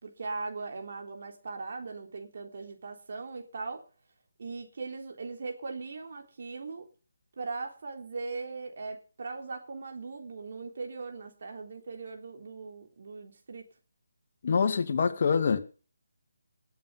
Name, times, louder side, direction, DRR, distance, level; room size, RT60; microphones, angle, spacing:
voice 1, 0.0-3.8 4.4-6.9 7.4-13.7, right 4 dB, 55° right, 3.7 m, -39 dB
voice 2, 14.4-15.6, left 5 dB, 45° left, 2.2 m, -25 dB
20.5 x 8.1 x 5.7 m
figure-of-eight pair, 155°, 0 cm